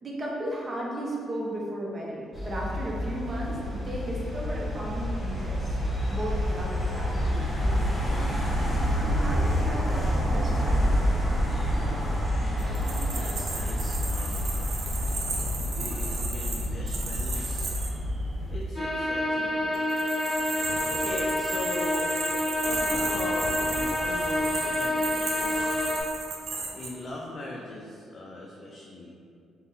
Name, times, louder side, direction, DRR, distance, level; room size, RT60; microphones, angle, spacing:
voice 1, 0.0-8.3 8.9-10.9, right 1 dB, 35° right, -4 dB, 0.8 m, -35 dB
sound 1, 2.3-18.6, equal, 10° left, 0.9 m, -28 dB
sound 2, 12.6-17.9 19.7-26.9, right 3 dB, 65° right, 0.5 m, -34 dB
voice 2, 13.1-14.4 15.7-17.7 18.5-19.9 20.9-22.2 22.6-25.7 26.7-29.2, left 2 dB, 40° left, -3 dB, 0.4 m, -40 dB
sound 3, 18.7-26.0, left 1 dB, 15° right, 1.4 m, -28 dB
3.6 x 2.2 x 3.8 m, 2.4 s
cardioid pair, 90°, 0 cm